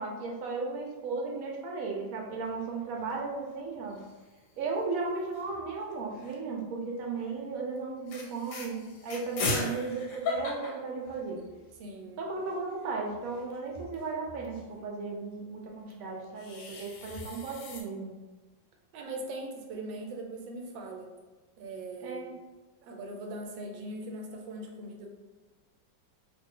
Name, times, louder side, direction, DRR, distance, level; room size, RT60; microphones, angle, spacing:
voice 1, 0.0-4.0 4.6-11.4 12.2-18.1 22.0-22.3, right 4 dB, 60° right, 0 dB, 0.9 m, -35 dB
sound 1, 2.4-3.1 3.5-3.6 3.8-4.4 5.3-6.5 7.1-7.4 7.8-7.9 8.1-11.7 12.1-12.2 12.4-14.7 15.9-17.8, left 3 dB, 85° left, 1.4 m, -38 dB
voice 2, 11.8-12.2 18.9-21.1 21.6-22.4 22.8-25.1, right 2 dB, 85° right, 1 dB, 1.3 m, -40 dB
3.3 x 2.4 x 3.6 m, 1.3 s
omnidirectional pair, 2.1 m